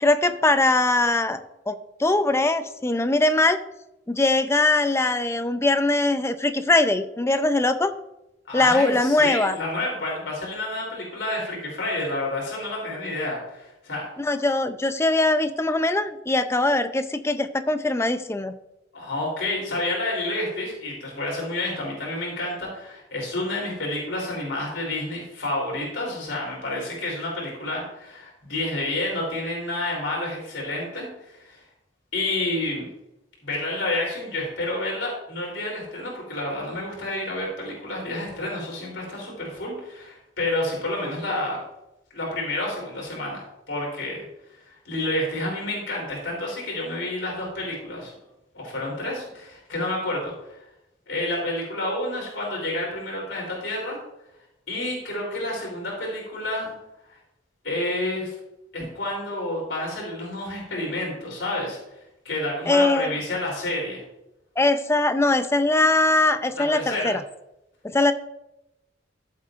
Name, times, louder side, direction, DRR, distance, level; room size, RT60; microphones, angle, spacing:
voice 1, 0.0-1.4 1.7-3.6 4.1-7.9 8.5-9.6 14.2-18.5 62.7-63.1 64.6-67.2 67.8-68.1, left 2 dB, 15° left, 10 dB, 0.5 m, -21 dB
voice 2, 8.5-14.0 18.9-31.6 32.1-32.9 33.4-41.6 42.1-44.2 44.6-48.1 48.5-50.6 51.1-54.0 54.7-56.7 57.1-57.2 57.6-58.3 58.7-61.8 62.2-64.0 66.6-67.2, left 1 dB, 80° left, -3 dB, 3.3 m, -29 dB
14.0 x 7.4 x 2.5 m, 0.89 s
head